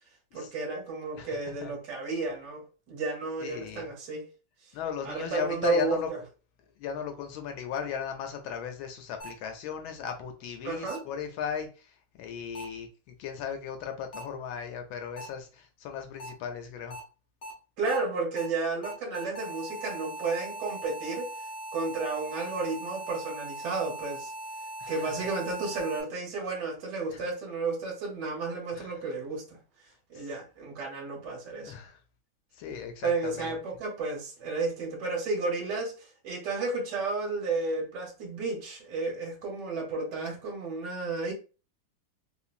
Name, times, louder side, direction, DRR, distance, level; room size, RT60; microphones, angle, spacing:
voice 1, 0.3-4.2 5.0-6.2 10.6-11.0 17.8-21.3 21.7-24.3 24.9-29.6 30.1-31.7 33.0-41.3, right 3 dB, 60° right, 1.6 m, -32 dB
voice 2, 3.4-3.9 4.7-6.1 6.8-11.7 12.2-12.9 13.2-17.0 24.8-25.0 27.1-27.2 28.7-28.9 31.6-32.0 32.6-33.5, left 7 dB, 75° left, 1.4 m, -36 dB
sound 1, 9.2-9.3 10.9-11.0 12.5-12.6 14.1-14.2 15.2-15.3 16.2-16.3 16.9-17.0 17.4-17.5 17.9-18.0 18.4-18.5 18.8-26.0, right 1 dB, 40° left, 0.7 m, -40 dB
3.6 x 2.9 x 2.5 m
omnidirectional pair, 2.3 m